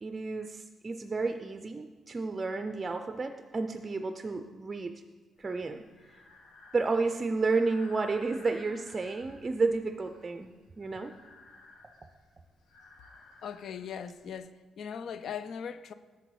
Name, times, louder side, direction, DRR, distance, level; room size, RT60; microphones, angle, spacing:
voice 1, 0.0-4.9 5.4-5.8 6.7-11.1, right 3 dB, 30° right, 0.4 m, -31 dB
Breathing, 5.4-14.4, left 3 dB, 90° left, 1.5 m, -56 dB
voice 2, 13.4-15.9, left 7 dB, 65° left, 0.5 m, -39 dB
7.8 x 7.0 x 4.7 m
cardioid pair, 105°, 0 cm